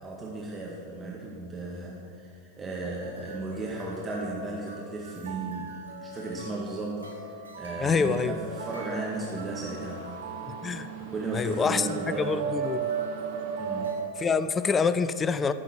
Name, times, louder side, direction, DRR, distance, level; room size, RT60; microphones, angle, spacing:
voice 1, 0.0-7.0 7.6-10.2 11.0-12.4 13.6-14.0, right 2 dB, 15° right, -4 dB, 1.8 m, -35 dB
sound 1, 3.0-14.2, right 2 dB, 75° right, 1.6 m, -43 dB
voice 2, 7.8-8.3 10.5-10.9 11.3-12.9 14.2-15.5, left 5 dB, 20° left, 13 dB, 0.5 m, -26 dB
sound 2, 8.5-13.9, right 7 dB, 55° right, 2.4 m, -35 dB
13.5 x 6.9 x 7.8 m, 2.3 s
figure-of-eight pair, 90°, 0 cm